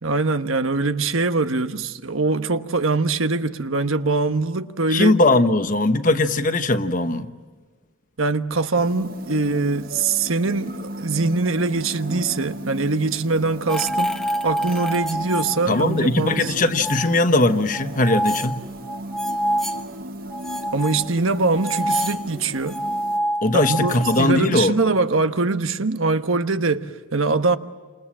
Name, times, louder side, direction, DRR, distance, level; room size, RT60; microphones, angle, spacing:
voice 1, 0.0-5.1 8.2-16.5 20.7-22.8 23.5-27.6, right 3 dB, 90° right, 1.2 m, -23 dB
voice 2, 4.9-7.3 15.7-18.6 23.4-24.8, left 2 dB, 40° left, 1.1 m, -19 dB
sound 1, 8.7-23.2, right 1 dB, 45° right, 1.6 m, -37 dB
sound 2, 13.7-16.0 16.3-17.2 17.7-19.8 20.3-24.3, equal, ahead, 1.0 m, -27 dB
29.0 x 27.0 x 7.5 m
head